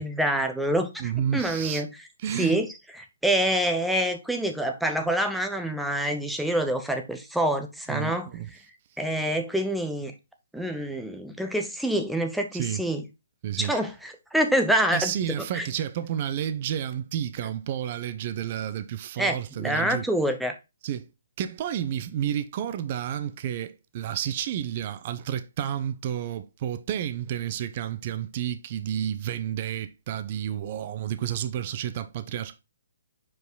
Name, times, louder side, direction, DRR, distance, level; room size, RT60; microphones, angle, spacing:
voice 1, 0.0-1.9 2.4-2.7 3.2-8.3 9.0-10.1 10.5-13.0 13.6-15.6 19.2-20.5, right 1 dB, ahead, 0.8 m, -26 dB
voice 2, 1.0-1.8 2.2-2.6 7.9-8.5 12.5-12.8 13.4-13.7 14.9-20.0 20.8-21.1 21.4-32.6, right 10 dB, 40° right, 0.8 m, -31 dB
5.1 x 4.7 x 3.9 m
hypercardioid pair, 140°, 0 cm